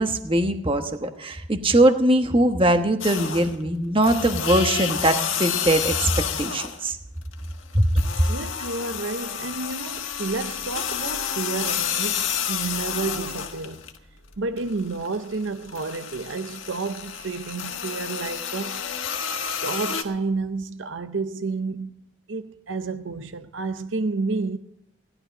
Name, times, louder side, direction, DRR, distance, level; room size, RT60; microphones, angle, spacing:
voice 1, 0.0-6.1 6.4-7.0 7.7-7.9, right 1 dB, 25° right, 1.2 m, -21 dB
sound 1, 3.0-3.6 4.0-6.9 7.2-14.0 14.3-20.0, left 8 dB, 85° left, 1.5 m, -30 dB
voice 2, 8.3-13.8 14.4-18.8 19.6-22.0 22.3-24.6, right 3 dB, 80° right, 0.7 m, -30 dB
17.0 x 12.0 x 5.2 m
head